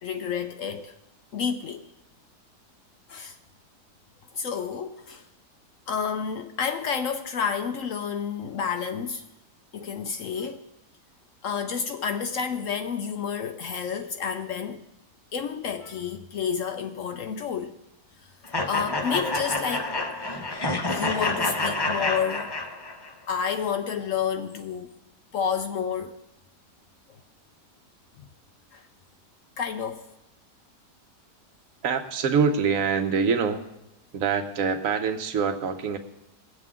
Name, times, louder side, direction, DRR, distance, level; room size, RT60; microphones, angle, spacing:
voice 1, 0.0-0.9 1.3-1.9 3.1-3.4 4.3-5.3 5.9-9.2 9.7-10.7 11.4-14.8 15.3-17.7 18.2-19.9 20.9-22.5 23.3-24.9 25.3-26.2 28.2-28.3 28.7-28.9 29.6-30.0, left 7 dB, 65° left, 0.8 m, -30 dB
sound 1, 18.5-23.1, left 2 dB, 25° left, 0.5 m, -28 dB
voice 2, 31.8-33.7 34.1-36.0, right 6 dB, 55° right, 1.3 m, -25 dB
20.5 x 7.6 x 3.6 m
omnidirectional pair, 1.8 m